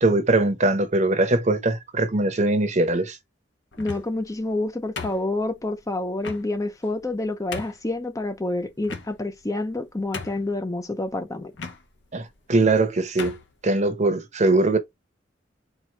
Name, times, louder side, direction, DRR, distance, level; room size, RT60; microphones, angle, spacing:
voice 1, 0.0-3.2 12.1-13.4 13.6-14.8, right 2 dB, 40° right, 0.9 m, -21 dB
sound 1, 3.7-4.2 5.0-5.6 6.2-6.4 7.0-7.1 7.5-7.9 8.8-9.4 9.8-9.9 10.1-10.6 11.5-11.8 12.6-12.8 13.2-13.5, left 4 dB, 75° left, 1.2 m, -36 dB
voice 2, 3.8-11.5, left 2 dB, 20° left, 0.6 m, -28 dB
4.6 x 2.7 x 4.3 m
head